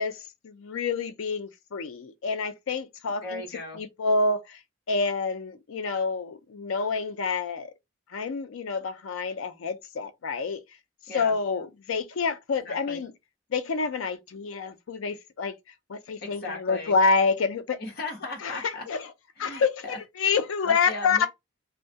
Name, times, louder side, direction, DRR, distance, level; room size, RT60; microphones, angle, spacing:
voice 1, 0.0-3.4 3.8-4.6 4.9-7.7 8.1-10.6 11.1-13.1 13.5-15.5 15.9-17.8 18.4-19.0 19.4-21.3, left 4 dB, 80° left, 0.4 m, -27 dB
voice 2, 3.2-3.8 11.1-11.3 12.6-13.0 16.2-17.0 17.8-18.9 19.4-20.0 20.6-21.3, left 2 dB, 50° left, 0.9 m, -37 dB
2.3 x 2.1 x 2.6 m
head